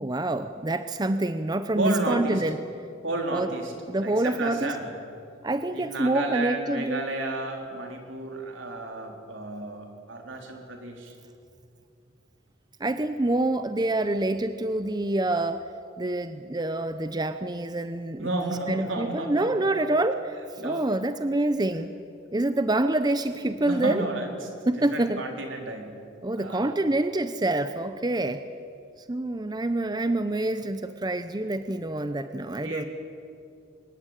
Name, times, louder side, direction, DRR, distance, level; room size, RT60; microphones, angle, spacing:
voice 1, 0.0-2.6 3.3-3.5 3.9-4.8 5.4-7.0 12.8-15.7 16.0-20.4 20.6-21.9 22.3-24.1 24.7-25.2 26.2-28.4 29.1-32.8, right 2 dB, 20° right, 10 dB, 0.7 m, -26 dB
voice 2, 1.8-2.4 3.0-3.7 4.0-4.9 5.7-11.1 18.2-19.7 20.6-20.9 23.6-24.5 24.9-26.0 26.4-26.7 32.6-32.9, right 2 dB, 75° right, 2 dB, 4.1 m, -32 dB
24.5 x 21.5 x 9.1 m, 2.6 s
head